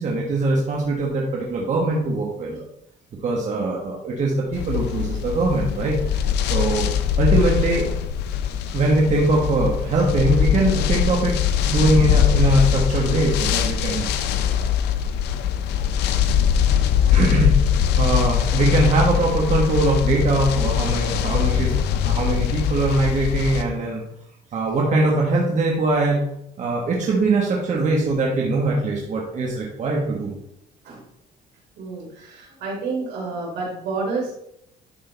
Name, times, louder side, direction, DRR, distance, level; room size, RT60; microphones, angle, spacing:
voice 1, 0.0-2.6 3.2-6.9 7.2-7.9 8.7-11.3 11.6-14.1 17.1-17.6 18.0-21.7 22.0-24.0 24.5-26.3 26.6-30.3, right 2 dB, 45° right, -2 dB, 1.5 m, -21 dB
sound 1, 4.5-23.6, left 9 dB, 85° left, 0.7 m, -22 dB
voice 2, 31.8-34.3, right 4 dB, 75° right, -2 dB, 3.3 m, -29 dB
11.5 x 3.9 x 4.0 m, 0.78 s
cardioid pair, 110°, 17 cm